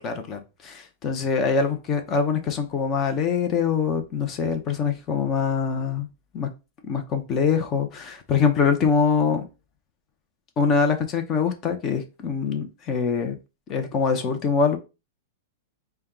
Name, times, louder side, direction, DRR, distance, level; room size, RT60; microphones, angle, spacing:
voice 1, 0.0-6.1 6.3-6.5 6.8-9.4 10.6-13.4 13.7-14.8, left 5 dB, 25° left, 6 dB, 0.7 m, -24 dB
4.3 x 2.2 x 3.7 m, 0.28 s
supercardioid pair, 155°, 0 cm